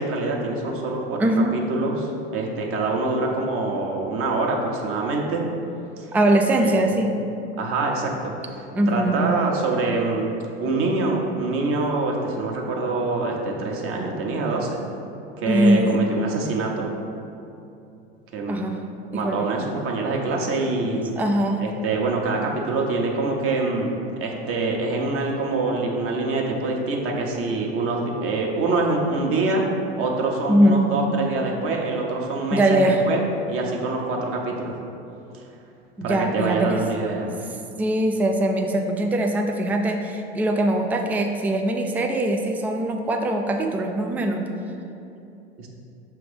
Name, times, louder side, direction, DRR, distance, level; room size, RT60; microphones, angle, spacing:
voice 1, 0.0-1.2 1.5-5.4 6.0-6.1 6.6-6.8 7.6-8.3 8.9-10.3 10.6-14.8 15.4-16.9 18.3-18.6 19.1-21.0 21.6-23.9 24.2-29.6 30.0-33.2 33.5-34.8 36.0-37.3 45.6-45.7, right 3 dB, 40° right, 0 dB, 1.1 m, -25 dB
voice 2, 1.2-1.6 6.1-7.1 8.7-9.3 15.5-16.0 18.5-18.8 19.1-19.5 21.2-21.6 30.5-30.9 32.5-33.0 36.0-36.8 37.8-44.5, right 1 dB, 5° right, 4 dB, 0.3 m, -21 dB
6.0 x 3.4 x 5.1 m, 2.7 s
hypercardioid pair, 90°, 33 cm